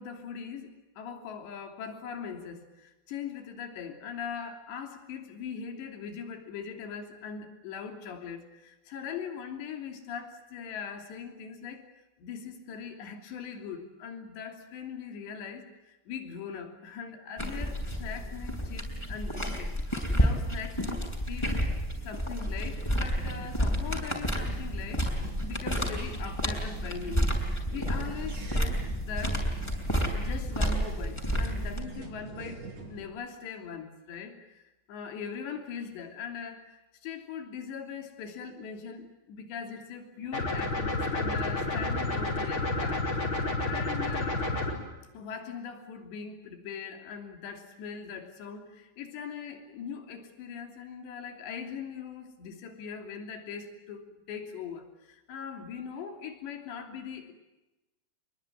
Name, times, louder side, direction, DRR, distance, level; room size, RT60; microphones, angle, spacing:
voice 1, 0.0-11.9 12.2-21.6 22.0-29.5 30.1-43.1 43.6-44.5 45.1-57.3, left 6 dB, 85° left, 5 dB, 5.3 m, -41 dB
sound 1, 17.4-31.8, equal, 5° left, 5.4 m, -30 dB
sound 2, 23.1-33.1, right 3 dB, 45° right, 6.4 m, -44 dB
sound 3, 40.3-44.7, left 2 dB, 30° left, 5.5 m, -30 dB
27.0 x 22.5 x 9.1 m, 1.0 s
omnidirectional pair, 4.9 m